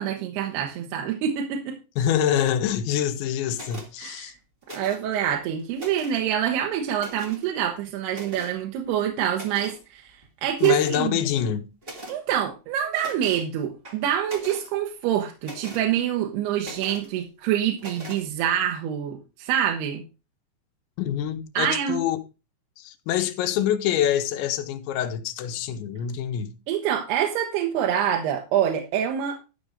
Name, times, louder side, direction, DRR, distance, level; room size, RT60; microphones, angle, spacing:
voice 1, 0.0-1.7 4.0-4.3 4.7-11.2 12.1-20.0 21.6-22.0 26.7-29.4, right 10 dB, 70° right, 3.0 m, -26 dB
voice 2, 2.0-4.3 10.6-11.6 21.0-22.2 22.8-26.5, left 10 dB, 85° left, 3.3 m, -25 dB
sound 1, 3.5-3.9 4.6-5.2 5.6-6.2 6.9-7.5 8.1-8.6 9.3-9.8 10.2-10.3 10.6-11.0 11.8-12.2 13.0-13.4 13.8-14.7 15.4-15.8 16.6-17.1 17.8-18.2, right 1 dB, 40° right, 0.7 m, -41 dB
13.0 x 5.5 x 5.1 m
omnidirectional pair, 5.2 m